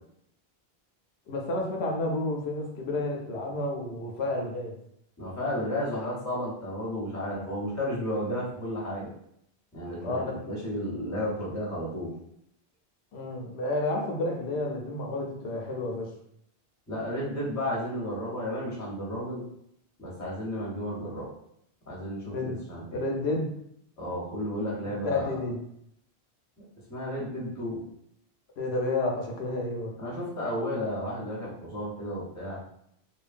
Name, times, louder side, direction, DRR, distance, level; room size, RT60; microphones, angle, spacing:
voice 1, 1.3-4.8 10.0-10.4 13.1-16.1 22.3-22.6 22.9-23.5 24.8-25.6 28.6-30.0, left 2 dB, 85° left, 0 dB, 0.8 m, -30 dB
voice 2, 5.2-9.1 9.7-12.1 16.9-19.4 20.0-21.3 21.9-23.0 24.0-25.4 26.9-27.8 30.0-32.6, equal, 20° left, -5 dB, 0.8 m, -33 dB
3.0 x 2.2 x 2.5 m, 0.72 s
omnidirectional pair, 1.1 m